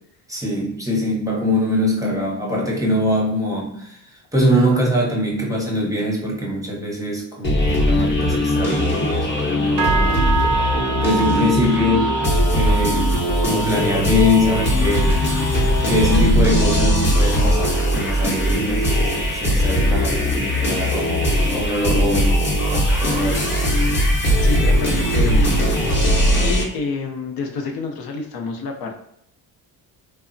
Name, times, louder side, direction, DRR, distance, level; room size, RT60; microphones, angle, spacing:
voice 1, 0.3-4.0 4.3-10.3 10.9-15.2 15.9-23.5, left 1 dB, 10° right, -3 dB, 0.7 m, -23 dB
sound 1, 7.4-26.7, equal, 25° left, 0.8 m, -19 dB
sound 2, 9.8-19.3 19.6-20.1 20.5-20.8 21.4-21.5, right 5 dB, 90° right, 0.6 m, -28 dB
voice 2, 24.4-25.6 25.9-28.9, left 4 dB, 65° left, 3 dB, 0.6 m, -28 dB
3.2 x 2.0 x 2.5 m, 0.71 s
cardioid pair, 110°, 40 cm